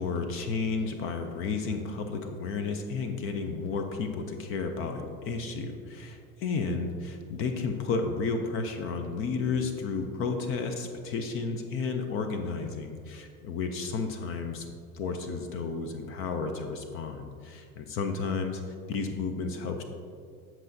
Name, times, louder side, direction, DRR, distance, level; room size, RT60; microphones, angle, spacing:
voice 1, 0.0-14.7 14.9-18.6 18.9-19.8, left 4 dB, 30° left, 6 dB, 0.4 m, -32 dB
7.8 x 7.4 x 2.6 m, 2.2 s
supercardioid pair, 140°, 43 cm